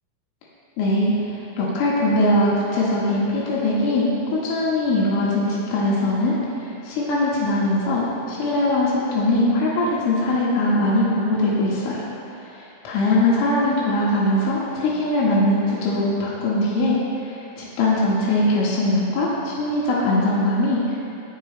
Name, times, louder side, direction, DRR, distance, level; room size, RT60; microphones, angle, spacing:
voice 1, 0.8-12.1 12.4-21.0, left 1 dB, 90° left, -7 dB, 4.4 m, -21 dB
23.0 x 11.0 x 2.2 m, 2.8 s
omnidirectional pair, 5.6 m